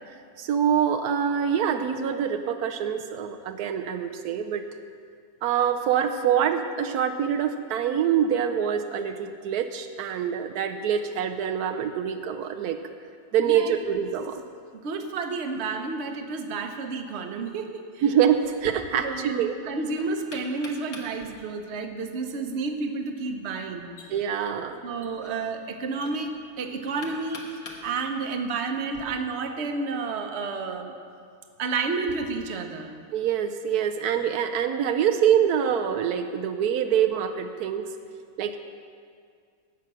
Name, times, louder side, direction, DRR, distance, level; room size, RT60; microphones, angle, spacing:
voice 1, 0.4-4.7 5.4-12.8 13.3-14.4 18.0-19.5 24.1-24.8 33.1-37.9 38.4-38.6, right 8 dB, 85° right, 7 dB, 1.1 m, -25 dB
voice 2, 13.4-13.7 14.8-18.0 19.0-23.9 24.8-27.4 27.8-30.9 31.6-32.9, right 4 dB, 50° right, 5 dB, 1.0 m, -31 dB
Knock, 18.4-29.0, left 2 dB, 70° left, 1.8 m, -47 dB
16.5 x 5.9 x 6.1 m, 2.2 s
omnidirectional pair, 1.6 m